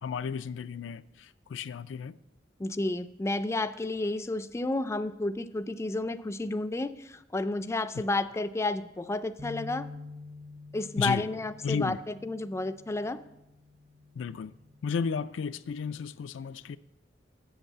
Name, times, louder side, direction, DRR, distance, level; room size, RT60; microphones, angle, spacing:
voice 1, 0.0-2.1 11.0-11.3 11.6-12.0 14.1-14.5 14.8-16.8, left 6 dB, 90° left, 0.4 m, -33 dB
voice 2, 2.6-9.9 10.7-13.2, left 2 dB, 15° left, 0.3 m, -31 dB
sound 1, 9.4-15.6, left 3 dB, 40° right, 0.8 m, -48 dB
8.0 x 6.7 x 7.3 m
head